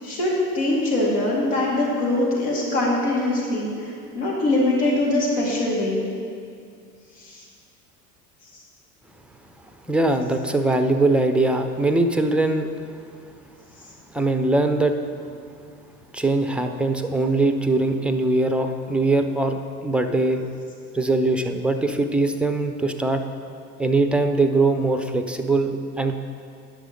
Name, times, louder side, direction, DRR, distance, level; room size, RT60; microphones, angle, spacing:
voice 1, 0.0-6.0 7.2-7.4, left 2 dB, 70° left, -4 dB, 2.3 m, -23 dB
voice 2, 9.9-12.7 14.1-15.0 16.1-20.4 20.9-23.2 23.8-26.2, right 2 dB, 5° right, 6 dB, 0.4 m, -21 dB
10.0 x 6.3 x 5.2 m, 2.3 s
hypercardioid pair, 70°, 47 cm